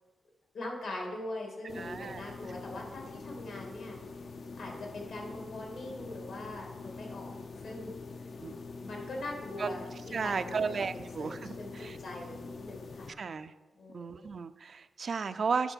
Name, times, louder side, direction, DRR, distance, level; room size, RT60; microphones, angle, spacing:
voice 1, 0.5-4.0 4.6-7.3 7.6-8.0 8.8-10.7 11.2-11.3 11.6-13.2 13.8-14.3, left 1 dB, 75° left, 0 dB, 2.2 m, -42 dB
sound 1, 1.7-13.1, left 4 dB, 60° left, 0.5 m, -44 dB
voice 2, 1.7-2.4 8.4-8.5 9.6-9.7 10.1-12.0 13.1-13.5 13.9-15.7, right 5 dB, 50° right, 11 dB, 0.4 m, -34 dB
8.9 x 4.3 x 6.2 m, 1.2 s
wide cardioid pair, 115°, 0 cm